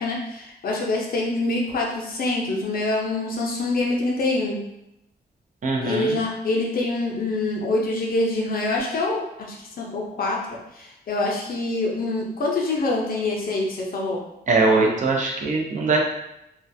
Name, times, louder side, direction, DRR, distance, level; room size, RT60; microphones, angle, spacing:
voice 1, 0.0-4.6 5.8-14.2, left 2 dB, 55° left, -2 dB, 0.5 m, -25 dB
voice 2, 5.6-6.1 14.5-16.0, right 3 dB, 45° right, -1 dB, 0.5 m, -21 dB
2.3 x 2.2 x 2.6 m, 0.84 s
wide cardioid pair, 150°, 18 cm